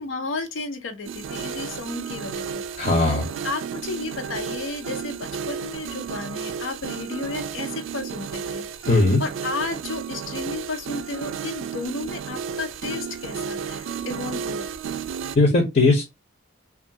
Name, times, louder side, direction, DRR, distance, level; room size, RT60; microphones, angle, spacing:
voice 1, 0.0-3.2 3.4-14.7, left 3 dB, 80° left, 0.6 m, -33 dB
sound 1, 1.0-15.4, right 7 dB, 80° right, 0.3 m, -33 dB
voice 2, 2.8-3.3 8.9-9.2 15.3-16.0, left 2 dB, 40° left, 0.7 m, -18 dB
2.6 x 2.4 x 2.6 m
head